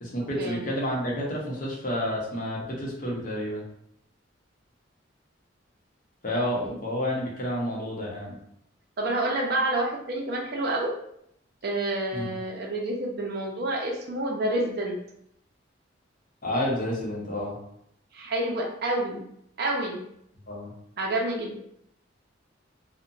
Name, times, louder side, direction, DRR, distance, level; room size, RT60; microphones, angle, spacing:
voice 1, 0.0-3.6 6.2-8.3 12.1-12.3 16.4-17.6 20.5-20.7, equal, 45° left, -3 dB, 0.7 m, -30 dB
voice 2, 9.0-10.9 11.6-15.0 18.1-19.2 19.6-20.0 21.0-21.6, right 1 dB, 55° right, 0 dB, 0.5 m, -28 dB
2.8 x 2.1 x 2.5 m, 0.72 s
head